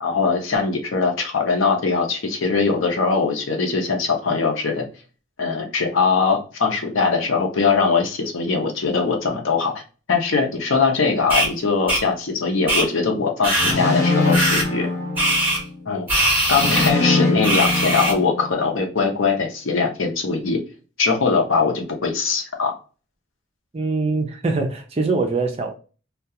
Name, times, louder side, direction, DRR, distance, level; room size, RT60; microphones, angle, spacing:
voice 1, 0.0-4.9 5.4-9.7 10.1-14.9 15.9-16.1 16.5-20.6 21.0-22.7, left 4 dB, 75° left, 0.6 m, -21 dB
sound 1, 11.3-11.5 11.9-12.0 12.7-12.8 13.4-13.7 14.3-14.6 15.2-15.6 16.1-16.9 17.4-18.1, right 1 dB, 10° right, 1.2 m, -20 dB
sound 2, 13.5-15.7 16.5-18.7, left 3 dB, 15° left, 0.8 m, -22 dB
voice 2, 23.7-25.8, right 3 dB, 30° right, 0.4 m, -23 dB
2.3 x 2.2 x 2.7 m
head